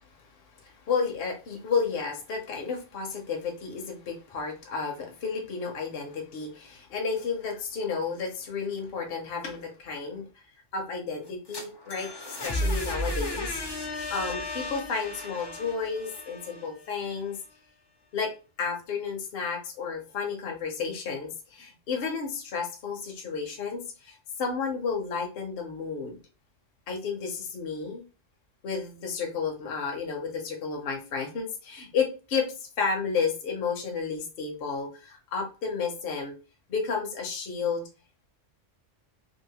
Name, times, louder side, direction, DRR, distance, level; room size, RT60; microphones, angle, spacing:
voice 1, 0.6-10.3 10.7-13.6 14.1-17.4 18.1-18.3 18.6-26.2 26.9-28.0 28.6-32.5 32.8-36.3 36.7-37.8, left 5 dB, 55° left, 2 dB, 0.8 m, -32 dB
sound 1, 11.3-17.1, left 1 dB, 35° left, 0.4 m, -34 dB
2.7 x 2.5 x 2.8 m, 0.32 s
omnidirectional pair, 1.3 m